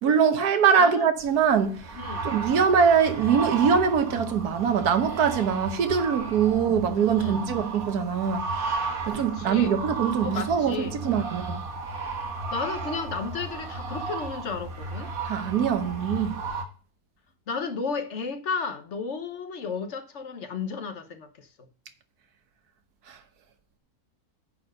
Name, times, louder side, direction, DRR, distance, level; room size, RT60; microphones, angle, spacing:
voice 1, 0.0-2.0 2.2-8.6 9.0-11.6 15.2-16.3 23.1-23.2, right 7 dB, 85° right, 1.6 m, -23 dB
sound 1, 1.2-16.6, right 3 dB, 70° right, 1.8 m, -34 dB
voice 2, 1.9-2.3 6.5-6.6 7.2-7.4 9.1-9.8 10.2-11.0 12.5-15.1 17.5-21.7, left 5 dB, 55° left, 1.3 m, -33 dB
9.7 x 4.4 x 6.3 m
omnidirectional pair, 1.6 m